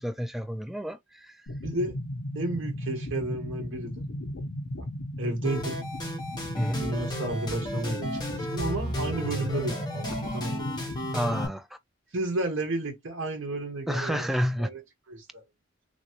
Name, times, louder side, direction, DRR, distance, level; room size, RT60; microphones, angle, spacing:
voice 1, 0.0-1.4 6.6-6.9 11.1-11.7 13.9-14.7, equal, ahead, 0.3 m, -30 dB
sound 1, 1.5-11.5, left 1 dB, 75° left, 0.7 m, -36 dB
voice 2, 1.6-1.9 2.3-4.0 5.2-5.8 6.8-10.7 11.3-11.4 12.1-14.3 14.6-14.8 15.1-15.4, right 2 dB, 65° right, 1.1 m, -32 dB
sound 2, 5.4-11.5, equal, 20° left, 1.0 m, -34 dB
3.1 x 2.5 x 2.8 m
head